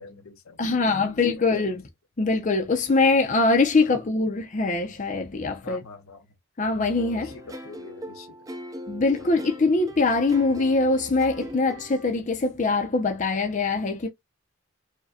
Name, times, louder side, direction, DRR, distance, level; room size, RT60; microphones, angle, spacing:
voice 1, 0.0-1.8 3.8-4.0 5.6-6.3 7.1-8.5 9.2-9.4, left 4 dB, 90° left, 0.8 m, -46 dB
voice 2, 0.6-1.8 2.2-5.8 6.6-7.4 8.9-14.1, left 3 dB, 35° left, 0.5 m, -23 dB
sound 1, 7.0-12.1, equal, 15° right, 0.4 m, -40 dB
4.8 x 2.2 x 2.6 m
head